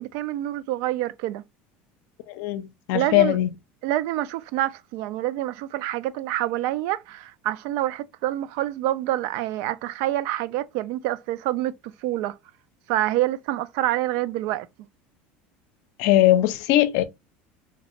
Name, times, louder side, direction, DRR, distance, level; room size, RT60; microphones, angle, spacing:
voice 1, 0.0-1.4 2.9-3.4 3.8-11.7 12.0-12.4 12.9-14.7, right 14 dB, 70° right, 0.4 m, -27 dB
voice 2, 2.3-3.5 16.0-17.0, left 14 dB, 70° left, 0.5 m, -20 dB
3.2 x 2.9 x 2.9 m
supercardioid pair, 120°, 5 cm